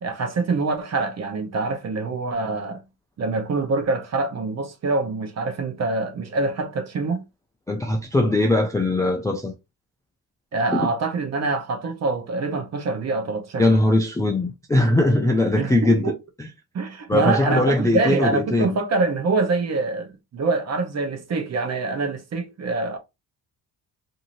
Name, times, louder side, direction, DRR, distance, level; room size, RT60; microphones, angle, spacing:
voice 1, 0.0-2.8 3.2-7.2 10.5-13.8 15.6-16.1 16.7-23.0, right 3 dB, 40° right, 0.8 m, -25 dB
voice 2, 7.7-9.5 10.7-10.9 13.6-16.5 17.1-18.8, left 1 dB, 10° left, 0.3 m, -20 dB
2.7 x 2.6 x 2.9 m
cardioid pair, 130°, 42 cm